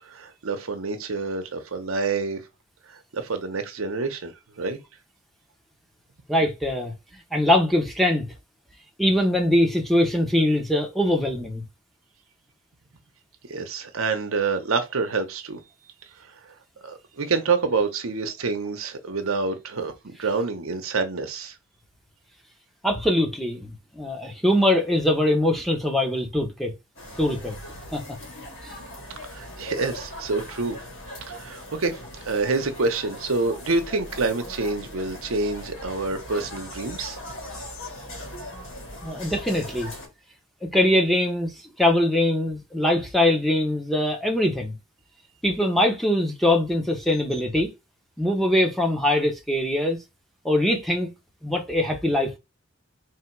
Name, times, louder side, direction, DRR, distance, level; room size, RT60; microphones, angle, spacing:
voice 1, 0.0-2.4 2.9-4.8 13.5-15.6 16.8-21.5 29.3-30.8 31.3-37.2, right 4 dB, 85° right, 0.8 m, -27 dB
voice 2, 6.3-6.9 7.3-8.3 9.0-11.6 22.8-26.7 27.2-27.6 27.9-28.0 28.6-28.8 39.0-39.9 40.6-41.5 41.8-44.8 45.4-47.7 48.2-50.0 50.4-51.1 51.4-52.4, left 1 dB, ahead, 0.8 m, -22 dB
sound 1, 27.0-40.1, left 1 dB, 65° left, 1.9 m, -39 dB
3.3 x 2.8 x 4.5 m
head